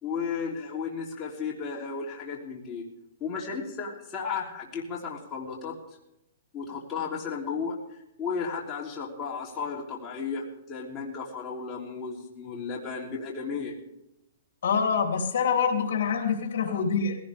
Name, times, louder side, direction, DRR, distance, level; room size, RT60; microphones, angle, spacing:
voice 1, 0.0-2.8 3.2-5.7 6.5-7.7 8.2-13.7, left 5 dB, 20° left, -3 dB, 3.2 m, -34 dB
voice 2, 14.6-17.2, left 6 dB, 70° left, 3 dB, 3.2 m, -25 dB
19.0 x 17.0 x 3.5 m, 0.85 s
hypercardioid pair, 150°, 0 cm